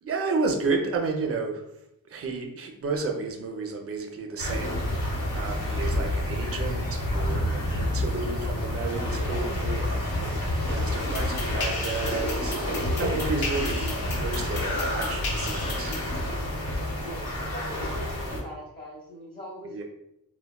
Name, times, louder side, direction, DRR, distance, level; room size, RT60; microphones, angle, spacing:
voice 1, 0.0-1.6 2.1-16.0 19.6-19.8, right 4 dB, 40° right, 3 dB, 0.4 m, -32 dB
sound 1, 4.4-18.4, left 1 dB, 65° left, 1.0 m, -29 dB
sound 2, 11.0-16.2, left 3 dB, 80° left, 0.7 m, -36 dB
voice 2, 16.7-19.8, equal, 25° left, -7 dB, 0.8 m, -42 dB
3.3 x 2.1 x 2.3 m, 0.85 s
wide cardioid pair, 125°, 36 cm